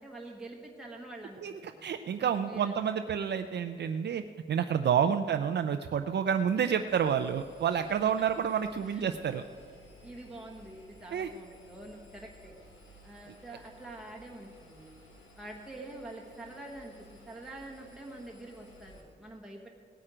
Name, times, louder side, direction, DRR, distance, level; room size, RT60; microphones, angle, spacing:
voice 1, 0.0-1.9 2.4-2.9 5.0-5.2 8.0-8.1 8.9-9.0 10.0-12.6 13.0-15.0 15.3-16.9 17.2-19.7, right 2 dB, 5° right, -2 dB, 1.2 m, -46 dB
voice 2, 1.8-4.2 4.5-9.4 11.1-11.3, right 8 dB, 60° right, 8 dB, 0.4 m, -29 dB
Engine, 6.9-19.0, equal, 90° left, 2.1 m, -56 dB
17.5 x 8.8 x 5.0 m, 2.2 s
wide cardioid pair, 180°, 20 cm